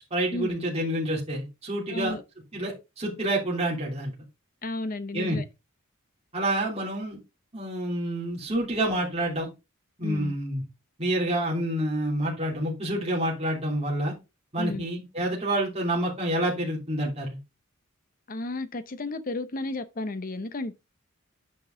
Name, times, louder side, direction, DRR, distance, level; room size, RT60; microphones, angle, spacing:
voice 1, 0.1-2.2 2.5-4.1 5.1-5.4 6.3-7.2 7.5-9.5 10.0-10.6 11.0-14.1 14.5-17.4, right 1 dB, 30° right, 3.1 m, -28 dB
voice 2, 1.9-2.2 4.6-5.4 10.0-10.3 14.6-14.9 18.3-20.7, left 2 dB, 40° left, 0.7 m, -33 dB
9.4 x 5.3 x 3.8 m
head